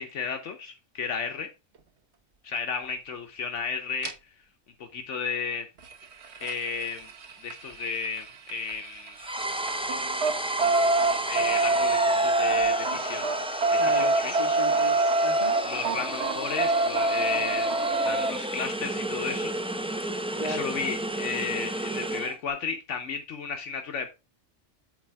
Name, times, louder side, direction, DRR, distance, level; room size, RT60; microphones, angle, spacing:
voice 1, 0.0-1.5 2.4-4.1 4.9-5.7 6.4-7.1 7.4-9.1 10.8-13.3 13.7-14.5 15.7-19.5 20.4-24.1, left 5 dB, 75° left, 1.2 m, -33 dB
sound 1, 4.0-4.1 5.8-9.3 9.6-18.3 20.0-20.1 20.4-20.5 20.8-20.9, right 3 dB, 60° right, 1.3 m, -26 dB
sound 2, 9.2-22.4, right 1 dB, 10° right, 0.4 m, -32 dB
voice 2, 13.8-15.6 20.4-20.7, left 2 dB, 30° left, 2.0 m, -36 dB
8.4 x 4.2 x 4.6 m
omnidirectional pair, 1.3 m